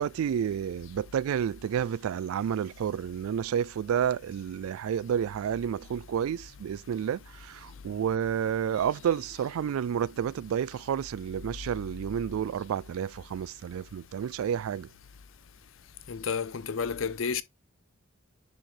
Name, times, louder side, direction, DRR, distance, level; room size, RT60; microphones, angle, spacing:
voice 1, 0.0-14.9, right 8 dB, 85° right, 0.3 m, -30 dB
voice 2, 16.1-17.4, left 6 dB, 70° left, 0.6 m, -31 dB
10.5 x 3.9 x 3.2 m
head